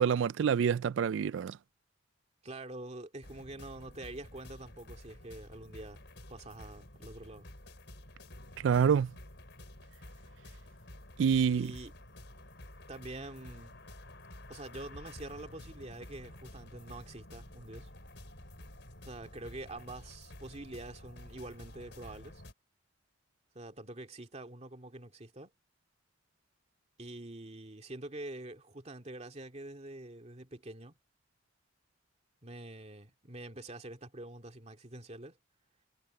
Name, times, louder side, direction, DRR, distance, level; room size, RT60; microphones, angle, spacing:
voice 1, 0.0-1.6 8.6-9.1 11.2-11.7, right 7 dB, 75° right, 0.3 m, -27 dB
voice 2, 2.4-6.0 6.3-7.5 11.5-11.9 12.9-13.8 14.5-17.9 19.0-22.4 23.5-25.5 27.0-30.9 32.4-35.4, right 2 dB, 35° right, 2.3 m, -46 dB
sound 1, 3.2-22.5, left 1 dB, 65° left, 5.3 m, -51 dB
head